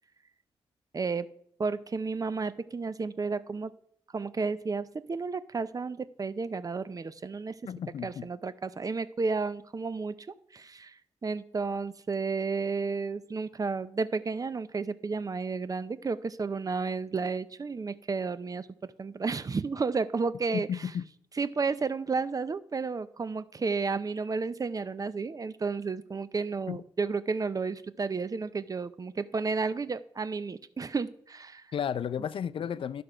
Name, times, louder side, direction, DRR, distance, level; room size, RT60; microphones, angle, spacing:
voice 1, 0.9-1.3 1.6-3.7 4.1-7.6 8.0-10.1 10.5-10.9 11.2-20.7 21.4-31.6, right 4 dB, 35° right, 0.6 m, -32 dB
voice 2, 7.6-8.3 20.5-21.1 26.7-26.8 31.7-33.0, left 8 dB, 60° left, 0.4 m, -33 dB
11.0 x 6.0 x 5.0 m
supercardioid pair, 55°, 10 cm